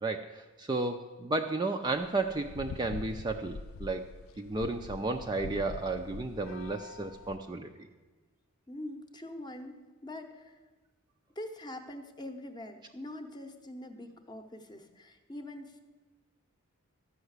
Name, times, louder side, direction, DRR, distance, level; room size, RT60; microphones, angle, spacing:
voice 1, 0.0-4.1 4.4-7.7, right 3 dB, 20° right, 5 dB, 0.4 m, -33 dB
sound 1, 1.9-7.4, left 4 dB, 65° left, 0.4 m, -44 dB
voice 2, 8.7-10.6 11.4-15.8, left 1 dB, 20° left, 6 dB, 0.8 m, -44 dB
13.0 x 5.7 x 8.0 m, 1.3 s
head